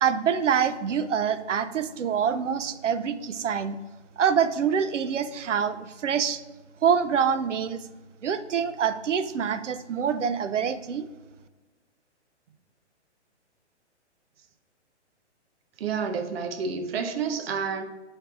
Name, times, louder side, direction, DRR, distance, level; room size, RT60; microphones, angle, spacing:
voice 1, 0.0-3.8 4.2-6.4 6.8-7.8 8.2-11.1, right 7 dB, 85° right, 11 dB, 0.6 m, -25 dB
voice 2, 15.8-17.8, right 5 dB, 55° right, 6 dB, 0.9 m, -29 dB
11.5 x 4.5 x 2.5 m, 1.2 s
hypercardioid pair, 135°, 36 cm